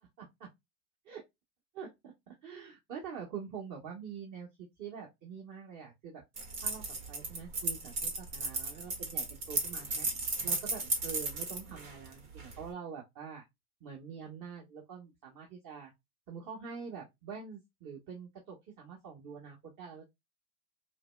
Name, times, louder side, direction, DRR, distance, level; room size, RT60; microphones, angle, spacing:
voice 1, 0.2-0.5 1.0-1.2 1.7-4.5 4.8-6.2 6.6-6.8 7.1-10.1 10.4-13.4 13.8-15.9 16.3-20.0, right 6 dB, 45° right, 1.3 m, -45 dB
sound 1, 6.4-12.6, right 3 dB, 75° right, 1.5 m, -35 dB
4.7 x 2.1 x 2.2 m
hypercardioid pair, 95°, 44 cm